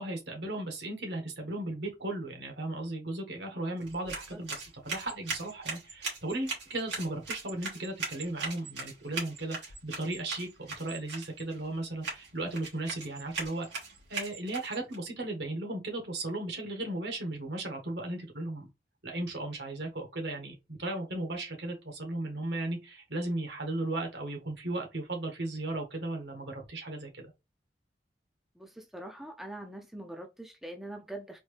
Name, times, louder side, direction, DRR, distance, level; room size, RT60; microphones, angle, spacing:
voice 1, 0.0-10.5 10.8-13.7 14.1-18.7 19.0-27.3, right 2 dB, 75° right, 1.5 m, -36 dB
sound 1, 3.8-15.0, right 4 dB, 90° right, 2.3 m, -40 dB
voice 2, 28.6-31.4, right 1 dB, ahead, 0.5 m, -43 dB
4.2 x 2.7 x 3.3 m
head